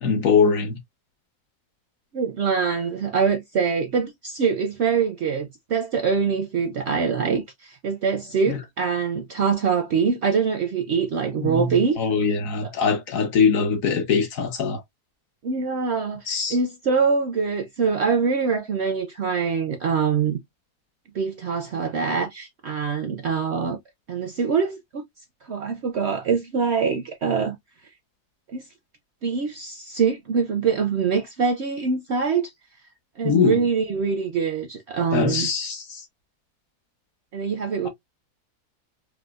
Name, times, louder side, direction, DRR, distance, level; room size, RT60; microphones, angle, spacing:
voice 1, 0.0-0.8 8.5-8.6 11.4-14.8 16.3-16.6 33.2-33.6 35.1-36.0, left 5 dB, 60° left, 1.2 m, -22 dB
voice 2, 2.1-12.0 15.4-20.4 21.1-23.8 24.1-25.0 25.5-27.6 28.5-28.6 29.2-32.5 33.2-35.5 37.3-37.9, right 5 dB, 60° right, 0.7 m, -24 dB
4.8 x 2.1 x 2.3 m
omnidirectional pair, 1.7 m